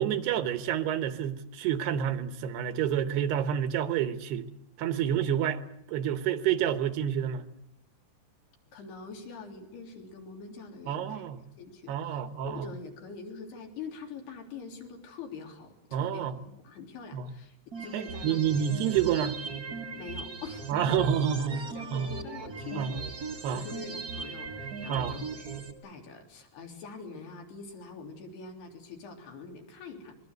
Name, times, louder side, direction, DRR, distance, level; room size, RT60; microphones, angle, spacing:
voice 1, 0.0-4.5 4.8-5.6 5.9-7.4 10.9-11.4 11.9-12.7 15.9-16.4 17.1-17.3 17.9-19.4 20.7-21.6 21.9-22.1 22.7-22.9 23.4-23.7 24.9-25.3, right 9 dB, 75° right, 3.1 m, -29 dB
voice 2, 8.7-11.3 11.6-18.6 20.0-21.2 21.5-23.1 23.4-25.5 25.8-30.2, left 4 dB, 65° left, 5.3 m, -44 dB
sound 1, 17.7-25.7, right 4 dB, 40° right, 1.3 m, -38 dB
24.5 x 23.0 x 8.0 m
omnidirectional pair, 5.0 m